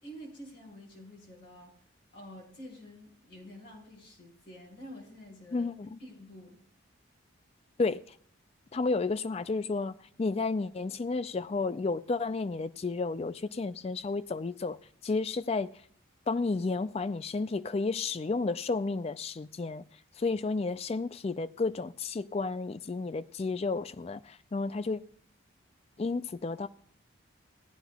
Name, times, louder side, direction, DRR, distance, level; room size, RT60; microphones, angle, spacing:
voice 1, 0.0-1.8 2.1-5.7 6.0-6.6, equal, 55° left, 4.4 m, -48 dB
voice 2, 5.5-6.0 7.8-8.2 8.7-14.8 15.0-15.7 16.3-19.8 20.2-25.0 26.0-26.7, left 3 dB, 30° left, 0.3 m, -32 dB
17.0 x 9.8 x 2.3 m
head